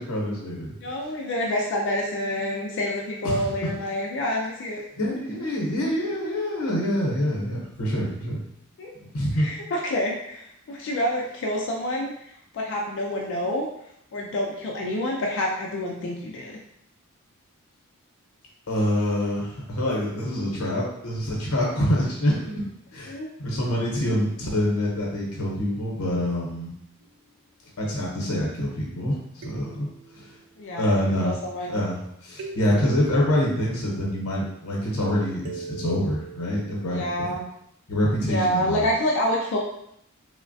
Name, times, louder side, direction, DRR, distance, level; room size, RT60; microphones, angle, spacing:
voice 1, 0.0-0.7 3.2-3.7 5.0-8.4 9.0-9.5 18.7-22.7 22.9-26.7 27.8-30.3 30.8-31.3 31.7-37.0 37.9-38.8, equal, 85° left, -3 dB, 0.7 m, -26 dB
voice 2, 0.8-4.8 8.8-8.9 9.3-12.3 12.5-13.7 14.1-16.6 23.1-23.3 30.6-31.7 36.9-37.4 38.3-39.6, left 1 dB, 55° left, -1 dB, 0.4 m, -27 dB
sound 1, 27.0-27.6 29.4-30.7 32.4-34.4 35.4-36.9, right 4 dB, 65° right, 0.4 m, -43 dB
3.1 x 2.1 x 2.6 m, 0.74 s
head